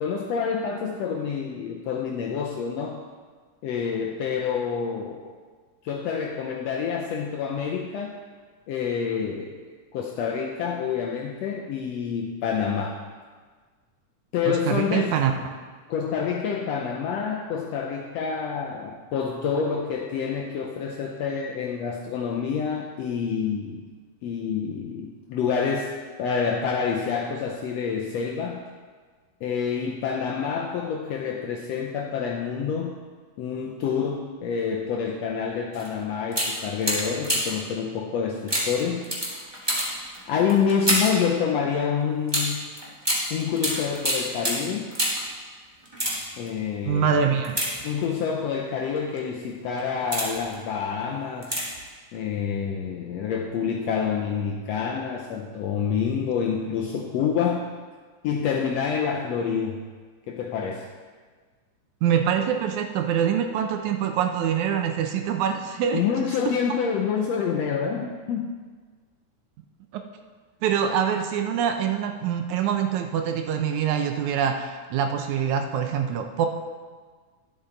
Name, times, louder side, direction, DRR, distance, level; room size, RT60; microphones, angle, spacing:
voice 1, 0.0-3.0 3.6-5.3 5.8-8.1 8.7-9.5 9.9-13.0 14.3-15.2 15.9-23.8 24.2-25.9 26.2-28.6 29.4-33.0 33.4-39.1 40.3-42.7 43.3-44.9 46.4-47.2 47.8-51.5 52.1-57.7 58.2-59.8 60.3-60.9 65.9-68.5, left 6 dB, 80° left, 1 dB, 1.5 m, -27 dB
voice 2, 14.5-15.3 46.9-47.6 62.0-66.0 66.5-66.6 69.9-70.0 70.6-76.5, right 8 dB, 75° right, 5 dB, 1.9 m, -24 dB
Mechanical Gear Handle, 35.7-35.9 36.3-37.7 38.5-41.3 42.3-45.3 45.8-46.5 47.4-48.3 48.9-49.2 49.7-50.5 51.4-51.9 52.1-52.2, equal, 15° right, 0.9 m, -28 dB
11.5 x 7.7 x 3.9 m, 1.5 s
omnidirectional pair, 3.6 m